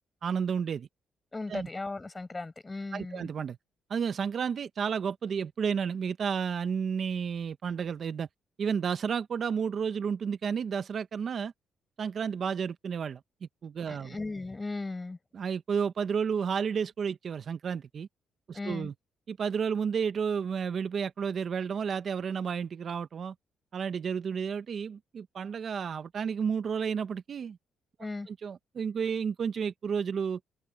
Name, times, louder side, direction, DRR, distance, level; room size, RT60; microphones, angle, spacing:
voice 1, 0.2-0.9 1.5-1.7 2.9-3.6 3.9-8.3 8.6-11.5 12.0-14.2 15.3-18.1 18.5-18.9 19.3-23.3 23.7-27.6 28.3-30.4, right 6 dB, 50° right, 0.9 m, -31 dB
voice 2, 1.3-3.3 13.9-15.2 18.5-18.9 28.0-28.3, left 3 dB, 20° left, 6.5 m, -37 dB
open air
cardioid pair, 90°, 0 cm